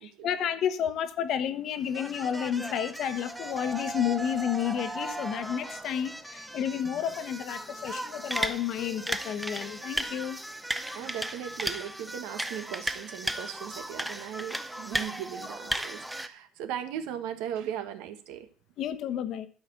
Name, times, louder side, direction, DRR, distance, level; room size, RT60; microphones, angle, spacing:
voice 1, 0.0-10.4 18.8-19.5, left 9 dB, 50° left, 1.1 m, -31 dB
sound 1, 1.9-16.3, right 1 dB, 5° right, 0.6 m, -36 dB
voice 2, 10.9-18.5, right 10 dB, 85° right, 1.5 m, -38 dB
12.0 x 5.1 x 7.8 m
cardioid pair, 160°, 0 cm